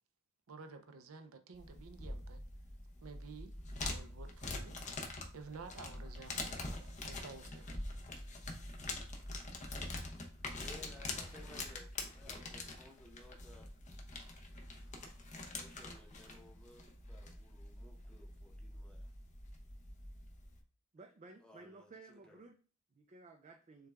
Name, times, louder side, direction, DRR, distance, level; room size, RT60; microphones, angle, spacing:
voice 1, 0.5-2.5 3.0-3.5 3.8-4.8 5.3-7.7, right 4 dB, 90° right, 7 dB, 0.6 m, -52 dB
sound 1, 1.5-20.6, left 2 dB, 35° left, 0.7 m, -45 dB
voice 2, 10.6-13.7 15.5-19.1 21.4-22.4, left 1 dB, 5° left, 1 dB, 0.9 m, -59 dB
voice 3, 20.9-22.6 22.9-23.9, right 3 dB, 35° right, 4 dB, 0.4 m, -56 dB
6.6 x 2.3 x 3.4 m, 0.40 s
head